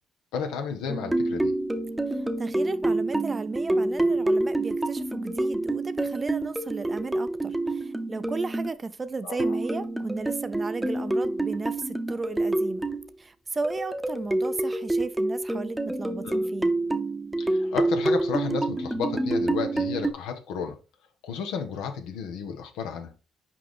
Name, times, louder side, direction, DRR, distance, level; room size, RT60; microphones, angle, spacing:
voice 1, 0.3-1.5 9.2-9.6 16.2-16.4 17.4-20.8 21.2-23.1, left 6 dB, 80° left, 1.1 m, -32 dB
sound 1, 0.9-8.7 9.4-13.1 13.6-20.1, right 2 dB, 10° right, 0.9 m, -27 dB
voice 2, 2.1-12.9 13.2-16.7, right 3 dB, 35° right, 0.6 m, -34 dB
5.9 x 4.9 x 3.6 m
supercardioid pair, 55°, 0 cm